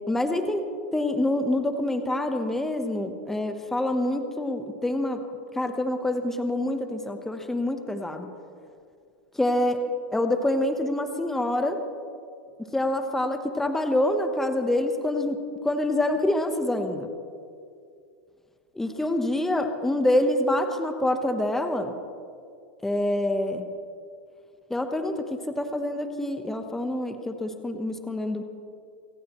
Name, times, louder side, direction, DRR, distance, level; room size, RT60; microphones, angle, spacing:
voice 1, 0.1-5.2 5.5-8.3 9.4-9.8 10.1-11.8 12.7-17.1 18.7-21.9 22.8-23.6 24.7-28.4, left 1 dB, 5° left, 6 dB, 1.1 m, -26 dB
26.0 x 17.5 x 3.1 m, 2.4 s
hypercardioid pair, 115°, 6 cm